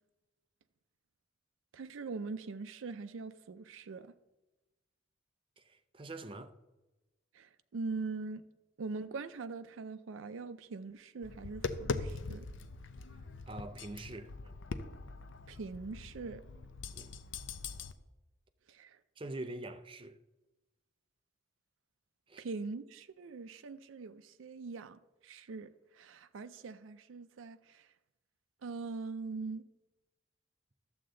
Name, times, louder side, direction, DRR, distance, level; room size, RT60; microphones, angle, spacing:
voice 1, 1.7-4.1 7.3-8.4 8.8-12.5 15.5-16.4 18.7-19.0 22.4-27.9 28.6-29.6, right 4 dB, 85° right, 0.4 m, -42 dB
voice 2, 5.6-6.6 13.5-14.3 16.9-17.1 19.2-20.2 22.3-22.4, right 2 dB, 25° right, 0.5 m, -44 dB
Tap, 11.2-17.9, left 4 dB, 75° left, 0.6 m, -42 dB
12.0 x 7.7 x 3.8 m
head